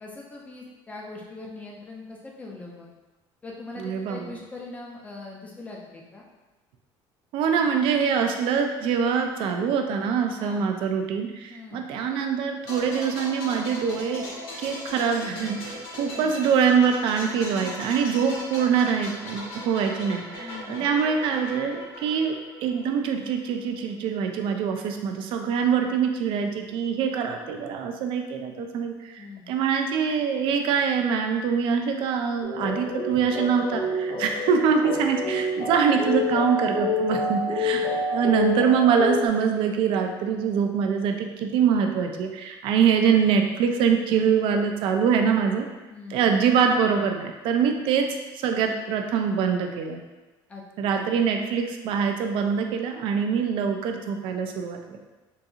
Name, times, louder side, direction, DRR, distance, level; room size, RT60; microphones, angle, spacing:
voice 1, 0.0-2.9 3.4-6.2 10.4-10.6 11.5-11.9 16.0-16.3 20.4-20.9 29.2-29.5 33.0-33.3 45.9-46.3 50.5-50.6 50.9-51.1, left 3 dB, 15° left, -2 dB, 0.4 m, -41 dB
voice 2, 3.8-4.3 7.3-14.3 14.6-45.7 46.1-48.1 48.3-50.0 50.8-55.0, right 6 dB, 60° right, 4 dB, 0.4 m, -24 dB
sound 1, 12.6-23.3 23.5-23.7, left 1 dB, 85° left, 1.0 m, -38 dB
sound 2, 32.4-39.3, left 2 dB, 50° left, 0.7 m, -28 dB
3.8 x 2.7 x 2.4 m, 1.2 s
cardioid pair, 175°, 10 cm